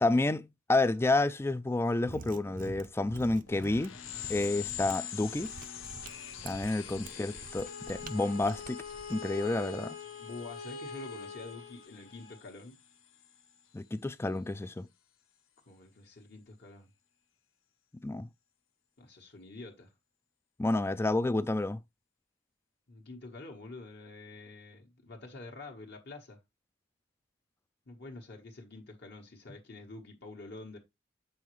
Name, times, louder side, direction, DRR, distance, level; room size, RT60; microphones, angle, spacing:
voice 1, 0.0-4.0 4.3-5.5 6.4-8.8 9.1-10.0 13.7-14.9 18.0-18.3 20.6-21.8, left 2 dB, 10° left, 0.3 m, -30 dB
Mechanisms, 2.0-9.2, right 3 dB, 40° right, 0.6 m, -48 dB
sound 1, 3.5-13.6, left 10 dB, 85° left, 0.9 m, -45 dB
voice 2, 6.7-7.5 10.2-12.8 15.7-16.9 19.0-19.9 22.9-26.4 27.9-30.8, left 2 dB, 55° left, 1.2 m, -47 dB
Bowed string instrument, 7.4-12.4, left 5 dB, 40° left, 1.4 m, -44 dB
7.6 x 5.5 x 3.1 m
head